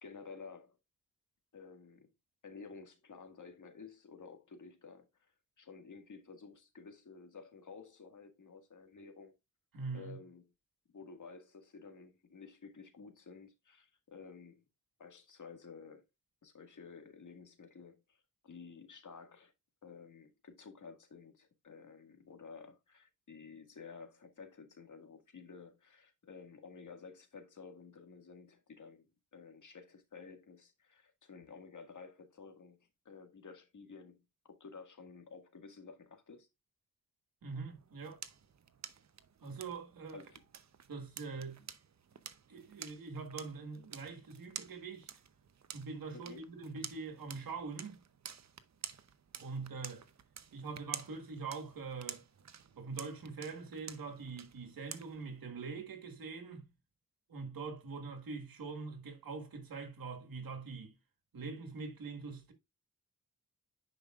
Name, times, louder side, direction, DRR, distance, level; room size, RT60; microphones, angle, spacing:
voice 1, 0.0-0.8 1.5-2.1 2.4-5.1 5.6-9.3 9.9-10.5 10.9-14.6 15.0-16.0 16.4-18.2 18.4-19.5 19.8-32.8 33.1-36.5 40.1-40.4 46.1-46.4, left 5 dB, 60° left, 1.9 m, -53 dB
voice 2, 9.7-10.2 37.4-38.2 39.4-40.2 40.9-41.7 42.5-45.1 45.7-48.0 49.4-50.0 50.5-52.2 52.8-56.7 57.3-60.9 61.3-62.5, right 4 dB, 90° right, 1.7 m, -43 dB
sound 1, 37.7-55.4, right 7 dB, 55° right, 0.8 m, -50 dB
10.0 x 5.2 x 2.4 m
cardioid pair, 75°, 34 cm